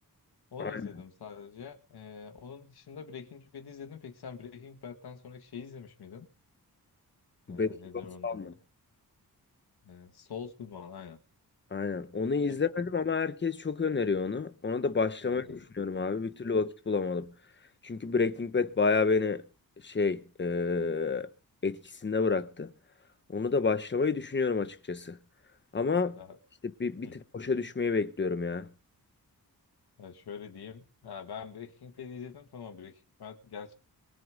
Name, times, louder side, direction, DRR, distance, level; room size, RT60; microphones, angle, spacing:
voice 1, 0.5-6.3 7.5-8.5 9.8-11.2 12.5-12.6 15.2-15.6 16.2-16.5 26.1-26.4 27.0-27.1 30.0-33.7, left 6 dB, 85° left, 2.1 m, -45 dB
voice 2, 8.2-8.5 11.7-17.3 17.8-19.4 19.8-21.3 21.6-22.7 23.3-25.2 25.7-26.2 26.8-28.7, left 4 dB, 30° left, 1.1 m, -29 dB
23.0 x 7.7 x 5.2 m
wide cardioid pair, 170°, 38 cm